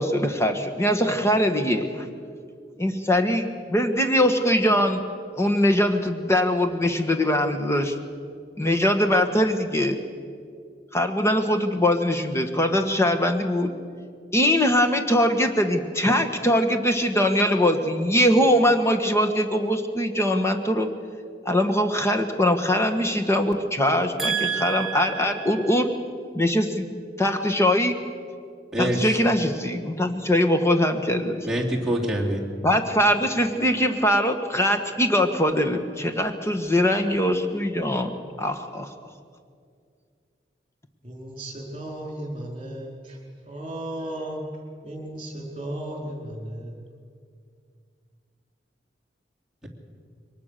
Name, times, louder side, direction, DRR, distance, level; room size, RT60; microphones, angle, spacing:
voice 1, 0.0-2.0 2.8-5.0 5.4-7.9 8.6-10.0 10.9-13.7 14.3-20.9 21.4-25.9 26.3-26.9 27.2-27.9 28.8-31.5 32.6-38.1 38.4-38.9, equal, 15° left, 6 dB, 1.5 m, -22 dB
voice 2, 24.2-25.6 28.7-29.2 31.4-32.4, right 2 dB, 5° right, -4 dB, 3.2 m, -26 dB
voice 3, 41.0-43.2 43.5-44.4 44.8-46.8, right 1 dB, 30° right, 0 dB, 4.7 m, -35 dB
23.0 x 19.5 x 6.8 m, 2.2 s
head